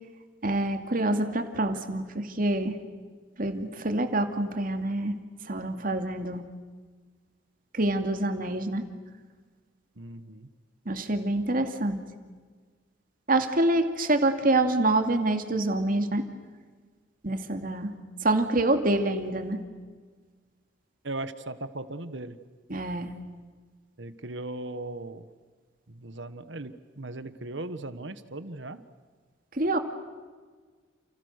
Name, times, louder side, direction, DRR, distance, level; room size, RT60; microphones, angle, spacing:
voice 1, 0.4-2.8 3.4-5.2 5.5-6.4 7.7-8.8 10.9-12.0 13.3-16.2 17.2-17.9 18.2-19.6 22.7-23.1 29.5-29.8, right 2 dB, 45° right, 6 dB, 2.5 m, -26 dB
voice 2, 10.0-10.5 21.0-22.4 24.0-25.3 25.9-28.8, right 2 dB, 70° right, 12 dB, 1.4 m, -38 dB
30.0 x 29.0 x 6.7 m, 1.5 s
head